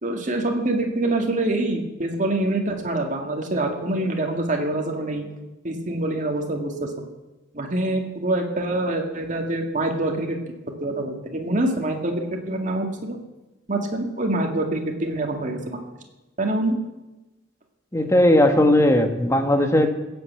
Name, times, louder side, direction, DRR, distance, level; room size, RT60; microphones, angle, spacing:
voice 1, 0.0-5.2 5.6-6.9 7.5-10.4 10.8-13.2 13.7-15.9 16.4-16.8, right 2 dB, 40° right, 2 dB, 2.1 m, -25 dB
voice 2, 17.9-19.9, left 1 dB, 15° left, 6 dB, 1.3 m, -17 dB
16.0 x 8.1 x 8.2 m, 1.1 s
head